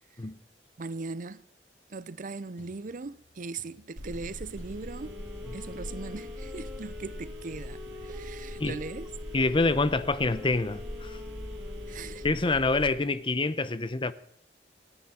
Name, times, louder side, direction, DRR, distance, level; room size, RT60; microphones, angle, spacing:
voice 1, 0.8-1.4 1.9-5.2 5.5-9.1 11.9-12.3, right 3 dB, 50° right, 0.6 m, -39 dB
sound 1, 2.6-8.9 9.6-9.9, left 1 dB, 80° left, 6.8 m, -60 dB
Telephone, 4.0-12.9, left 1 dB, 80° right, 2.6 m, -40 dB
Wind instrument woodwind instrument, 4.9-12.6, left 2 dB, 10° right, 2.2 m, -51 dB
voice 2, 9.3-11.2 12.2-14.1, left 3 dB, 30° left, 0.8 m, -26 dB
29.0 x 9.8 x 4.3 m
head